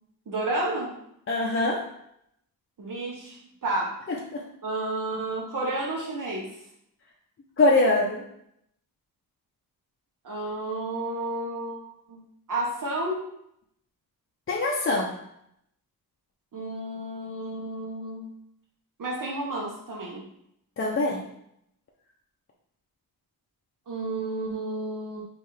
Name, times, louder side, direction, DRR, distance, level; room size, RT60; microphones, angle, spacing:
voice 1, 0.3-0.9 2.8-4.0 4.6-6.5 10.2-13.3 16.5-18.3 19.0-20.3 23.9-25.2, right 2 dB, 60° right, -3 dB, 1.0 m, -31 dB
voice 2, 1.3-1.8 4.3-4.4 7.6-8.2 14.5-15.1 20.8-21.2, left 2 dB, 35° left, -2 dB, 0.5 m, -23 dB
5.4 x 2.5 x 3.2 m, 0.75 s
wide cardioid pair, 125°, 36 cm